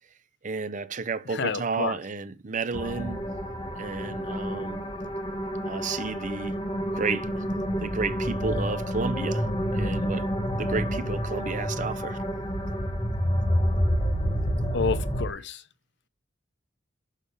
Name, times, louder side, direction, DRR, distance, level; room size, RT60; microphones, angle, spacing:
voice 1, 0.4-3.2 3.8-4.8 5.6-6.6 6.9-7.4 7.8-9.5 9.7-10.3 10.6-12.2, right 4 dB, 40° right, 0.6 m, -32 dB
voice 2, 1.3-1.9 14.7-15.6, left 5 dB, 60° left, 0.7 m, -29 dB
sound 1, 2.7-15.3, equal, 25° left, 1.3 m, -28 dB
6.7 x 5.4 x 5.2 m
head